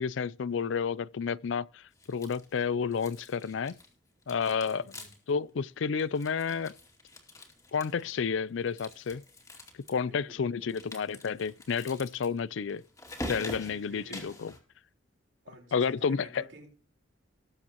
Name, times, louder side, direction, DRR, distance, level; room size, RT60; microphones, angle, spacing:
voice 1, 0.0-1.7 2.1-3.7 4.3-4.8 5.3-6.7 7.7-9.2 9.9-12.8 13.3-14.5 15.7-16.4, left 6 dB, 80° left, 0.4 m, -30 dB
sound 1, 2.0-2.6 2.9-3.9 4.2-5.3 5.6-5.7 6.0-8.2 8.7-9.9 10.7-14.6, left 1 dB, 20° left, 2.3 m, -45 dB
voice 2, 4.7-5.1 10.1-10.7 13.7-14.2 15.4-16.7, right 1 dB, 65° right, 4.2 m, -51 dB
19.5 x 7.3 x 2.9 m
head